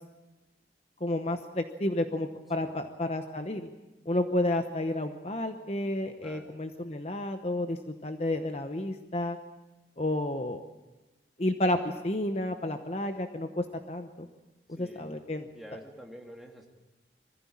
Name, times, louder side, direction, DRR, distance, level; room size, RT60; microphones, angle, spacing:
voice 1, 1.0-3.7 4.1-9.4 10.0-10.6 11.4-14.3 14.7-15.5, left 1 dB, 35° left, 7 dB, 0.9 m, -31 dB
voice 2, 6.2-6.5 14.7-15.1 15.5-16.7, equal, ahead, 1 dB, 2.2 m, -47 dB
23.0 x 15.0 x 8.6 m, 1.1 s
head